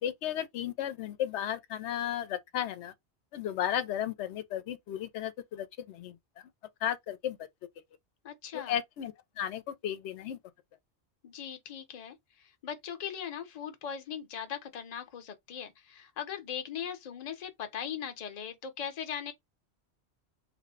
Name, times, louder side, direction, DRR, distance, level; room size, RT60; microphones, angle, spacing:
voice 1, 0.0-2.9 3.3-6.2 6.8-7.4 8.5-10.4, left 10 dB, 90° left, 0.9 m, -34 dB
voice 2, 8.2-8.7 11.2-12.1 12.6-19.3, left 8 dB, 45° left, 0.7 m, -39 dB
3.3 x 2.1 x 3.6 m
omnidirectional pair, 1.1 m